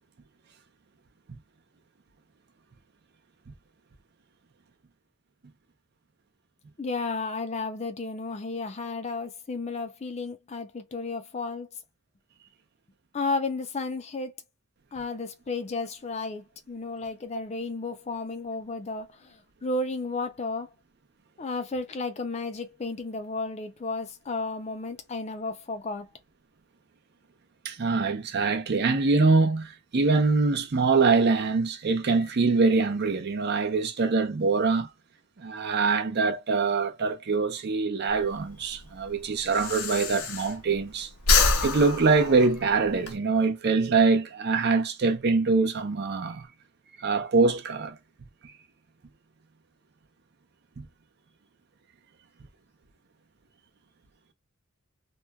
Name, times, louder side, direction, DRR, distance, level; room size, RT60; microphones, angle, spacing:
voice 1, 6.8-11.7 13.1-14.3 14.9-20.7 21.4-26.1, left 3 dB, 30° left, 0.4 m, -33 dB
voice 2, 27.6-34.9 35.4-41.1 41.6-46.5 47.0-48.0 50.8-50.9, right 4 dB, 50° right, 0.5 m, -24 dB
Breathing, 38.1-40.9 41.2-43.1, left 4 dB, 80° left, 0.6 m, -26 dB
2.9 x 2.2 x 2.2 m
head